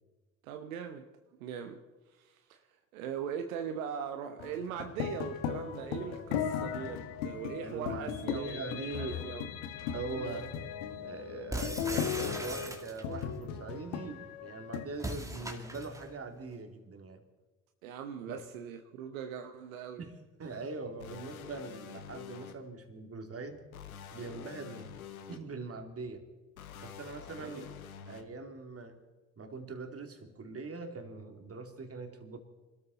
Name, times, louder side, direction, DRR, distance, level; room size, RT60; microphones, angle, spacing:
voice 1, 0.4-1.0 1.4-1.8 2.1-2.7 2.9-8.6 9.0-9.5 10.1-10.3 17.8-20.0 27.4-27.6, right 8 dB, 80° right, 6 dB, 1.0 m, -40 dB
sound 1, 4.4-14.8, left 8 dB, 70° left, 1.4 m, -37 dB
voice 2, 7.6-9.3 9.9-10.5 11.0-17.2 18.3-18.4 20.0-23.6 24.1-24.9 25.3-26.2 26.8-27.7 28.1-29.0 29.4-32.4, right 3 dB, 35° right, 4 dB, 2.8 m, -42 dB
sound 2, 11.5-13.2 15.0-16.1, right 1 dB, 10° right, 2.3 m, -39 dB
sound 3, 21.0-22.5 23.7-25.4 26.6-28.2, left 8 dB, 85° left, 1.0 m, -47 dB
25.5 x 13.5 x 4.1 m, 1.3 s
hypercardioid pair, 50°, 41 cm